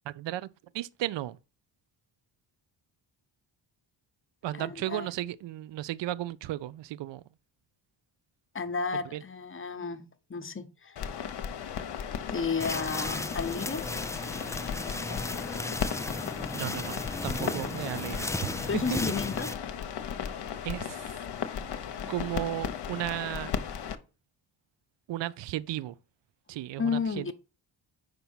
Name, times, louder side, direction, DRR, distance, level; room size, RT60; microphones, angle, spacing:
voice 1, 0.1-0.5 0.7-1.4 4.4-7.2 8.9-9.2 16.5-19.0 20.6-21.1 22.1-23.5 25.1-26.0 26.5-27.3, right 14 dB, 65° right, 0.5 m, -35 dB
voice 2, 4.5-5.1 8.5-10.0 10.3-11.0 12.3-13.8 14.7-15.2 18.7-19.5 26.8-27.3, left 5 dB, 25° left, 0.9 m, -32 dB
sound 1, 11.0-24.0, left 8 dB, 60° left, 0.9 m, -36 dB
sound 2, 12.6-19.5, left 2 dB, 5° left, 0.3 m, -35 dB
5.3 x 4.5 x 5.5 m
cardioid pair, 70°, 47 cm